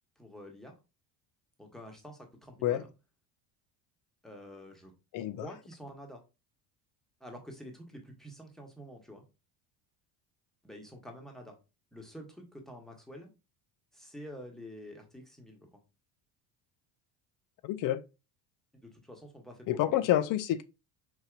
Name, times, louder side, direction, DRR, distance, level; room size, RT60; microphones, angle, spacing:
voice 1, 0.2-0.7 1.6-2.9 4.2-4.9 5.4-6.2 7.2-9.2 10.6-11.6 11.9-13.3 13.9-15.8 18.8-20.1, equal, ahead, 0.9 m, -48 dB
voice 2, 5.1-5.5 17.6-18.0 19.7-20.6, left 12 dB, 50° left, 0.5 m, -28 dB
4.6 x 2.7 x 2.4 m
supercardioid pair, 105°, 44 cm